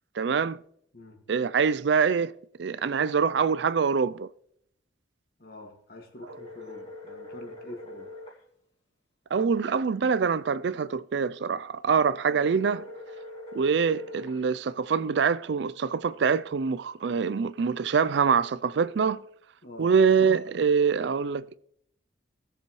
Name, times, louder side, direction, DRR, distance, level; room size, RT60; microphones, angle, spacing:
voice 1, 0.2-0.6 1.3-2.3 2.6-4.3 6.2-6.3 9.3-12.8 13.5-19.2 19.8-21.6, right 6 dB, 65° right, 0.4 m, -25 dB
voice 2, 5.4-8.1 19.6-20.0, left 2 dB, 50° left, 2.0 m, -46 dB
sound 1, 6.3-8.4 12.3-14.4, left 1 dB, 30° left, 2.3 m, -43 dB
17.5 x 7.0 x 3.1 m
head